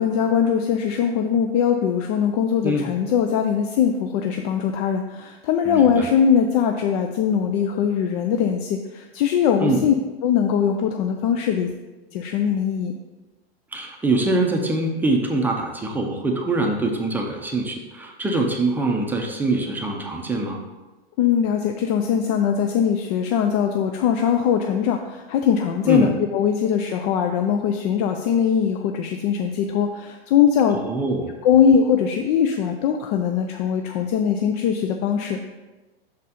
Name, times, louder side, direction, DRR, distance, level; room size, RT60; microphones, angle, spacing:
voice 1, 0.0-9.9 10.2-11.7 12.1-12.9 21.2-30.8 31.4-35.4, left 8 dB, 40° left, 5 dB, 0.4 m, -21 dB
voice 2, 5.7-6.1 9.6-9.9 13.7-20.6 25.9-26.1 30.7-31.4, right 2 dB, 5° right, 0 dB, 0.6 m, -24 dB
6.3 x 4.2 x 4.1 m, 1.2 s
hypercardioid pair, 125°, 31 cm